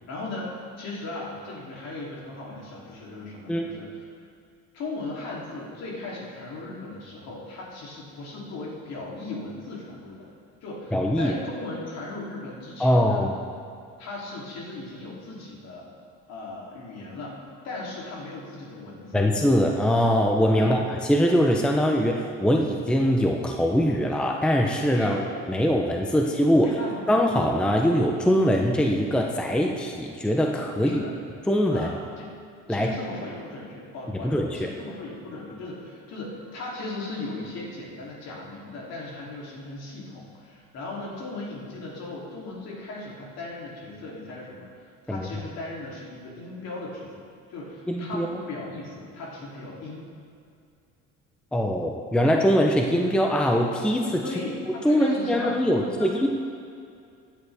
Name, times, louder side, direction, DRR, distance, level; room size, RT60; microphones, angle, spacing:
voice 1, 0.1-4.1 4.7-10.3 10.6-13.2 14.0-15.9 16.3-19.3 20.6-20.8 24.9-25.3 26.6-27.0 30.8-31.1 31.7-32.3 32.7-50.1 54.2-56.2, left 2 dB, 55° left, -4 dB, 3.1 m, -37 dB
voice 2, 10.9-11.3 12.8-13.3 19.1-20.8 21.1-25.2 25.5-26.8 27.1-31.0 31.5-31.9 32.7-32.9 34.2-34.7 45.1-45.3 47.9-48.3 51.5-54.2 54.8-56.3, equal, 5° left, 1 dB, 0.6 m, -22 dB
16.0 x 9.7 x 3.5 m, 2.4 s
cardioid pair, 140°, 31 cm